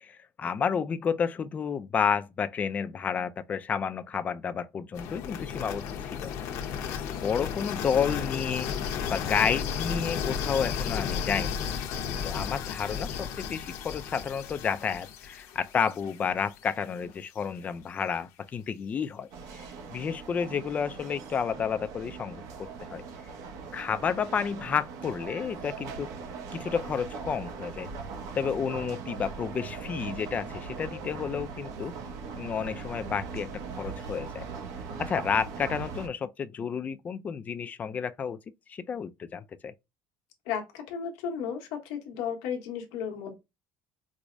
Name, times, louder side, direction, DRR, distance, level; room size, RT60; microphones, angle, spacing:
voice 1, 0.0-6.3 7.1-8.7 9.1-11.5 12.2-19.3 19.5-23.0 23.7-26.1 26.5-27.9 28.3-31.9 32.4-34.5 35.0-38.4 38.7-39.7, left 7 dB, 25° left, 0.3 m, -31 dB
sound 1, 4.9-16.9, left 7 dB, 65° left, 0.8 m, -34 dB
sound 2, 19.3-36.1, right 5 dB, 65° right, 0.7 m, -40 dB
voice 2, 40.4-43.4, left 7 dB, 85° left, 1.1 m, -34 dB
4.7 x 2.0 x 2.5 m
cardioid pair, 140°, 6 cm